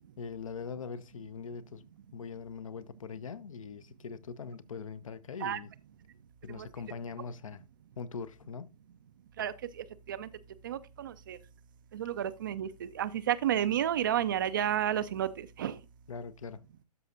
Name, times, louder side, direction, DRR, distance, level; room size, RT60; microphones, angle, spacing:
voice 1, 0.2-1.8 2.1-5.7 6.4-7.6 8.0-8.7 16.1-16.6, left 5 dB, 55° left, 0.7 m, -42 dB
voice 2, 9.4-10.3 10.6-11.4 11.9-15.8, right 10 dB, 30° right, 0.5 m, -32 dB
12.5 x 5.7 x 2.5 m
figure-of-eight pair, 130°, 21 cm